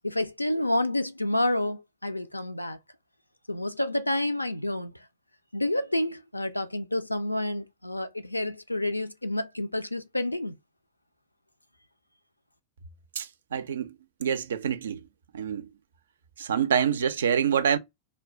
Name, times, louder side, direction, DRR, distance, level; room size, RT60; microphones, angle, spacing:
voice 1, 0.0-2.8 3.5-4.9 5.5-10.6, left 1 dB, 85° left, 0.3 m, -29 dB
voice 2, 13.2-14.0 14.2-15.0 15.3-15.7 16.4-17.8, right 8 dB, 65° right, 0.3 m, -26 dB
2.2 x 2.2 x 3.6 m
figure-of-eight pair, 90°, 0 cm